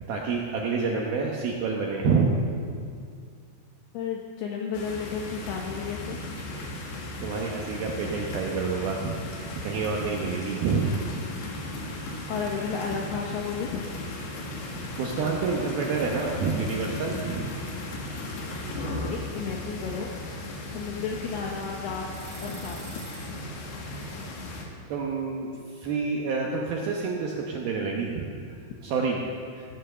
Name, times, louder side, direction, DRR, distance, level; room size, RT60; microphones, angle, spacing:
voice 1, 0.0-2.3 7.1-9.1 9.6-11.0 15.0-17.5 24.9-28.3 28.8-29.2 29.5-29.6, right 4 dB, 75° right, -1 dB, 2.3 m, -28 dB
voice 2, 3.9-6.2 12.3-14.0 19.1-20.1 20.6-22.1 22.4-22.8, left 6 dB, 80° left, 0 dB, 2.4 m, -33 dB
sound 1, 4.7-24.6, left 2 dB, 60° left, 3.5 m, -36 dB
sound 2, 13.1-23.3, right 4 dB, 35° right, 1.6 m, -48 dB
16.5 x 10.0 x 6.8 m, 2.2 s
omnidirectional pair, 5.7 m